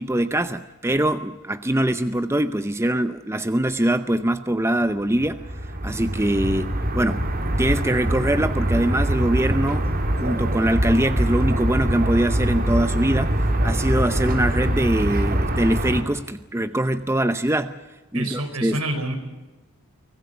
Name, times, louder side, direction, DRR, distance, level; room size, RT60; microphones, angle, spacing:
voice 1, 0.0-5.4 5.8-7.2 7.6-9.9 10.1-17.7 18.1-18.8, right 1 dB, 10° right, 11 dB, 0.7 m, -23 dB
sound 1, 5.1-16.0, right 1 dB, 40° right, 2.3 m, -23 dB
voice 2, 18.1-19.1, right 1 dB, 75° right, 6 dB, 4.7 m, -27 dB
24.5 x 19.0 x 8.1 m, 1.1 s
head